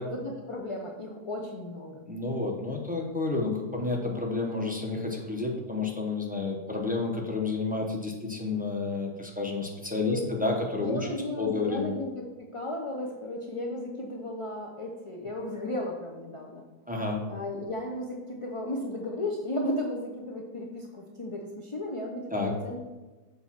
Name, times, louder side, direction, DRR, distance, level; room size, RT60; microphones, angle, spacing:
voice 1, 0.0-2.0 10.0-10.4 10.8-16.6 17.3-22.8, left 1 dB, 35° left, 0 dB, 0.5 m, -35 dB
voice 2, 2.1-11.1 11.4-11.9 16.9-17.2 22.3-22.5, left 3 dB, 5° right, 0 dB, 0.8 m, -30 dB
6.8 x 4.1 x 5.9 m, 1.2 s
omnidirectional pair, 1.6 m